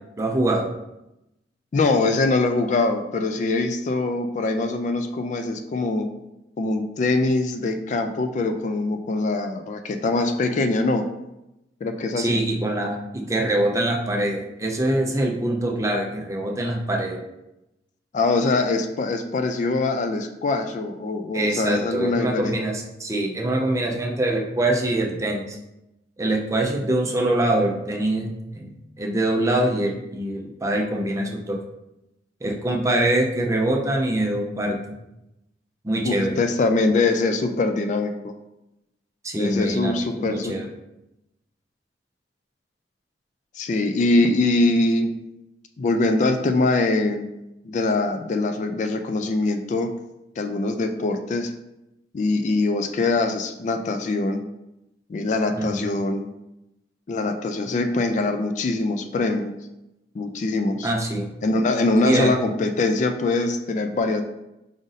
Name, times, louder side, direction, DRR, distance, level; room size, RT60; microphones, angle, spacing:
voice 1, 0.2-0.7 12.2-17.2 21.3-25.6 26.2-28.3 28.6-31.6 32.4-34.8 35.8-36.4 39.2-40.7 55.5-55.9 60.8-61.3 62.0-62.3, right 1 dB, 15° right, 0 dB, 0.5 m, -24 dB
voice 2, 1.7-6.1 6.6-11.0 11.8-12.4 18.1-22.5 36.0-38.3 39.4-40.5 43.6-45.1 45.8-47.3 47.6-49.9 50.4-51.5 52.1-54.4 55.1-56.3 57.1-59.5 60.1-60.9 61.4-64.2, left 2 dB, 40° left, 6 dB, 0.3 m, -23 dB
4.9 x 2.6 x 4.0 m, 0.90 s
head